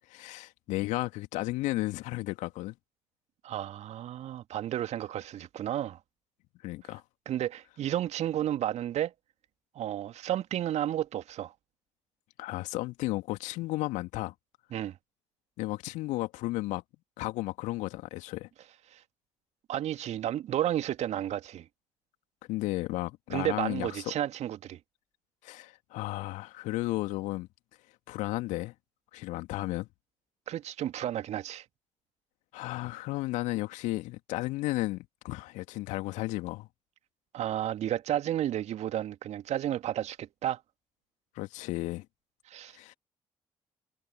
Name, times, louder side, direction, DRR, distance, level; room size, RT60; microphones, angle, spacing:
voice 1, 0.1-2.7 6.6-7.0 12.4-14.3 15.6-16.8 17.2-18.5 22.5-23.9 25.4-27.5 28.1-28.7 29.1-29.9 32.5-36.7 41.3-42.0 42.7-42.9, left 19 dB, 70° left, 2.6 m, -33 dB
voice 2, 3.4-6.0 7.3-9.1 9.8-11.5 14.7-14.9 18.9-19.0 19.7-21.7 23.3-24.8 30.5-31.6 37.3-40.6 42.5-42.8, right 11 dB, 60° right, 2.3 m, -32 dB
figure-of-eight pair, 40°, 13 cm